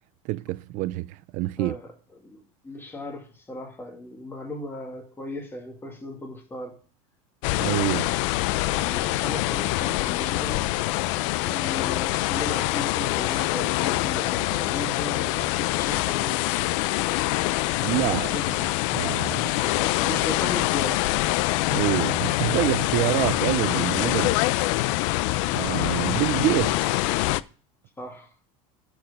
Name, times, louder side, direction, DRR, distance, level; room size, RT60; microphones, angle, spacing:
voice 1, 0.2-1.7 7.6-8.2 17.8-18.3 18.9-19.6 21.7-24.4 25.5-27.2, right 18 dB, 50° right, 0.4 m, -27 dB
voice 2, 1.6-1.9 2.2-6.8 8.6-10.7 11.4-16.8 18.0-18.7 19.6-21.1 28.0-28.3, left 1 dB, 15° left, 2.4 m, -37 dB
sound 1, 7.4-27.4, left 18 dB, 65° left, 0.5 m, -25 dB
11.0 x 4.8 x 5.1 m
supercardioid pair, 130°, 17 cm